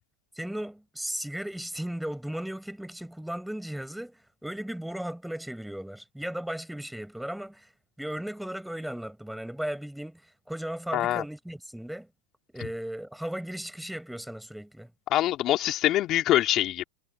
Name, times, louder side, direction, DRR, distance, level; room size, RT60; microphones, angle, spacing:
voice 1, 0.4-7.7 8.0-12.1 12.5-14.9, right 1 dB, ahead, 7.2 m, -36 dB
voice 2, 10.9-11.2 15.1-16.8, left 14 dB, 40° left, 3.3 m, -24 dB
hypercardioid pair, 115°, 0 cm